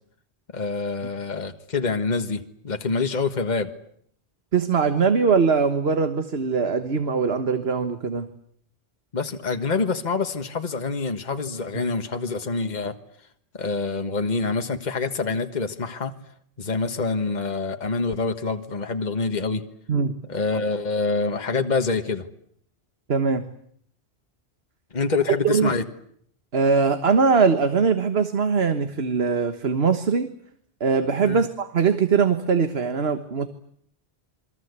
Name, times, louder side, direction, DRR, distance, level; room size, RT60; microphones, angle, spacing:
voice 1, 0.5-3.7 9.1-12.9 13.5-16.1 16.6-19.6 20.3-22.3 24.9-25.8 31.2-31.4, left 4 dB, 45° left, 7 dB, 1.6 m, -26 dB
voice 2, 4.5-8.3 19.9-20.1 23.1-23.4 25.4-25.7 26.5-30.3 30.8-33.5, right 5 dB, 70° right, 9 dB, 1.6 m, -21 dB
28.0 x 23.5 x 8.2 m, 0.67 s
omnidirectional pair, 1.1 m